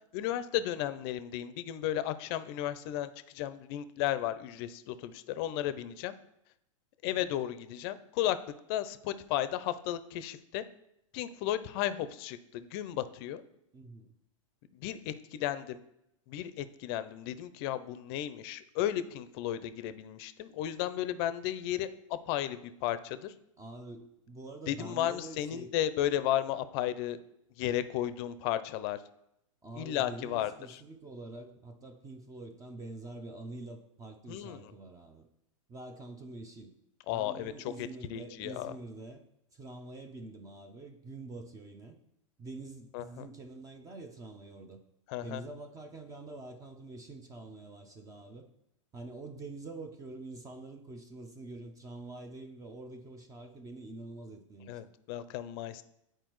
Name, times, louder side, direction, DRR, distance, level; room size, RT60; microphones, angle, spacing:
voice 1, 0.1-6.1 7.0-8.4 8.7-10.6 11.1-13.4 14.7-15.8 16.3-23.3 24.7-27.2 27.6-29.0 29.8-30.8 34.3-34.6 37.1-38.7 42.9-43.3 45.1-45.4 54.7-55.8, left 12 dB, 50° left, 14 dB, 0.5 m, -34 dB
voice 2, 13.7-14.1 23.6-25.7 29.6-35.3 35.7-36.7 37.1-39.2 39.5-42.0 42.4-44.8 45.2-48.4 48.9-54.8, right 2 dB, 20° right, 5 dB, 0.7 m, -46 dB
8.9 x 4.5 x 3.1 m, 0.80 s
hypercardioid pair, 115°, 17 cm